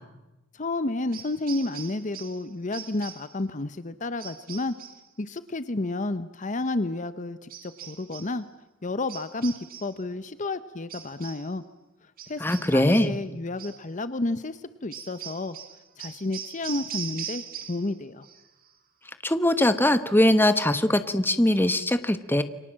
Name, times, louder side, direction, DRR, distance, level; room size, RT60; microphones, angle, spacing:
voice 1, 0.5-4.7 5.2-8.4 8.8-9.5 9.8-11.6 12.3-12.4 12.7-15.6 16.0-18.3, left 2 dB, 40° left, 13 dB, 0.8 m, -31 dB
sound 1, 1.1-2.4 2.7-3.3 4.2-5.1 7.5-8.4 9.1-10.0 10.9-11.5 12.2-13.2 13.6-13.8 14.9-17.9 18.2-18.7, right 8 dB, 45° right, 2.5 m, -41 dB
voice 2, 12.4-13.1 19.2-22.4, left 1 dB, 10° left, 11 dB, 1.2 m, -21 dB
29.0 x 24.5 x 7.5 m, 1.0 s
head